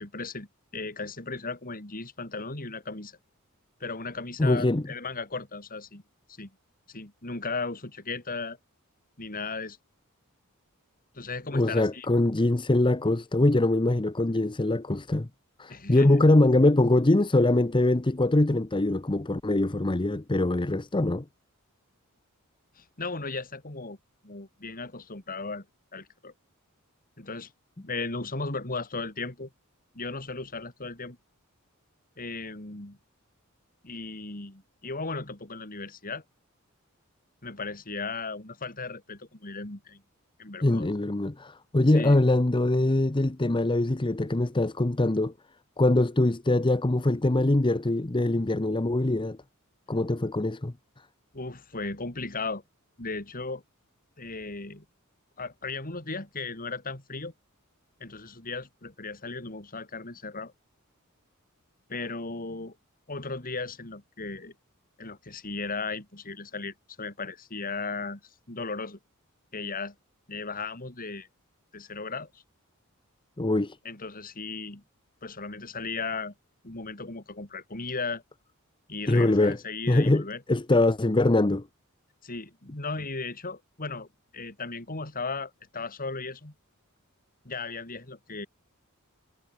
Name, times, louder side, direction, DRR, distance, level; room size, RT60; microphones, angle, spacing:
voice 1, 0.0-3.2 3.8-6.0 6.4-6.5 6.9-8.6 9.2-9.8 11.1-12.1 15.7-16.2 22.8-24.0 24.2-25.7 25.9-26.3 27.2-27.5 27.8-29.5 29.9-31.2 32.2-33.0 33.8-36.2 37.4-40.0 40.4-40.9 41.9-42.2 51.3-52.6 53.0-53.6 54.2-54.9 55.4-57.3 58.0-60.5 61.9-62.8 63.1-64.5 65.0-68.2 68.5-69.0 69.5-70.0 70.3-71.3 71.7-72.4 73.8-74.8 75.2-76.3 76.6-78.2 78.9-80.4 82.2-84.1 84.3-86.5 87.4-88.5, left 3 dB, 40° left, 3.6 m, -36 dB
voice 2, 4.4-4.8 11.5-15.3 15.6-21.2 40.6-45.3 45.8-49.4 49.9-50.7 73.4-73.8 79.1-79.6 79.9-81.6, left 2 dB, 20° left, 0.8 m, -23 dB
head